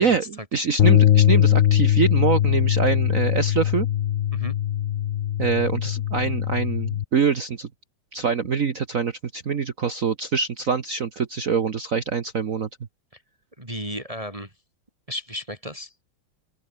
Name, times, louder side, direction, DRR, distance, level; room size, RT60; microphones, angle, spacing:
voice 1, 0.0-3.9 5.4-7.7 8.1-12.7, right 6 dB, 45° right, 1.6 m, -24 dB
sound 1, 0.8-7.0, left 11 dB, 80° left, 0.6 m, -21 dB
voice 2, 13.6-14.5 15.1-15.9, equal, 15° right, 3.8 m, -34 dB
open air
omnidirectional pair, 2.1 m